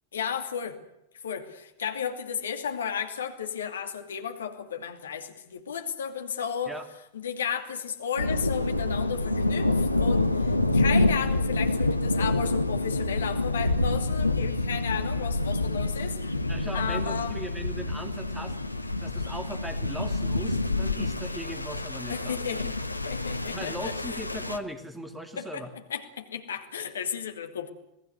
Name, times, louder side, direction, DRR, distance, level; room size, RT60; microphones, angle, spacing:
voice 1, 0.1-0.8 1.2-6.7 7.1-16.4 16.7-17.3 22.1-22.7 23.0-23.9 25.4-25.6 25.9-27.7, left 7 dB, 65° left, 7 dB, 2.5 m, -33 dB
sound 1, 8.2-24.6, left 2 dB, 85° left, 1.2 m, -27 dB
voice 2, 16.5-22.7 23.2-25.7, equal, 5° right, 8 dB, 2.6 m, -39 dB
27.5 x 19.0 x 8.1 m, 0.84 s
figure-of-eight pair, 90°, 0 cm